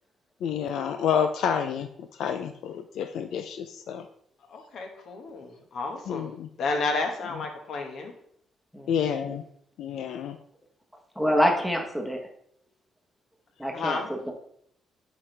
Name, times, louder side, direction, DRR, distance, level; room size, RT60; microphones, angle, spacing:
voice 1, 0.4-1.9 2.2-4.0 6.1-6.5 8.9-9.4 9.8-10.4, left 8 dB, 80° left, 8 dB, 0.4 m, -29 dB
voice 2, 4.5-6.3 6.6-8.1 13.7-14.1, left 3 dB, 60° left, 4 dB, 1.3 m, -31 dB
voice 3, 8.7-9.4 11.2-12.2 13.6-14.3, equal, 5° left, 2 dB, 1.1 m, -27 dB
8.5 x 4.6 x 3.3 m, 0.69 s
cardioid pair, 140°, 0 cm